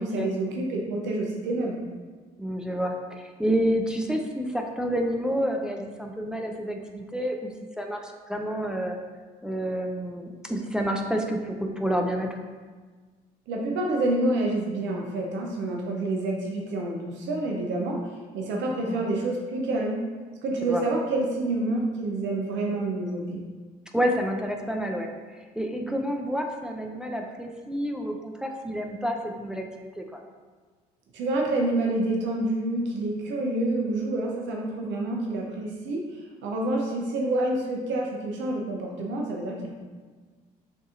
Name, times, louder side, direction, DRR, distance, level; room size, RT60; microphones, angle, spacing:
voice 1, 0.0-1.8 13.5-18.0 18.3-20.0 20.4-23.4 31.1-39.7, right 2 dB, 65° right, 0 dB, 0.7 m, -28 dB
voice 2, 2.4-9.0 9.4-12.4 18.9-19.1 20.7-20.8 23.9-30.2, equal, 5° right, 2 dB, 0.5 m, -29 dB
6.9 x 2.7 x 2.4 m, 1.4 s
hypercardioid pair, 60°, 20 cm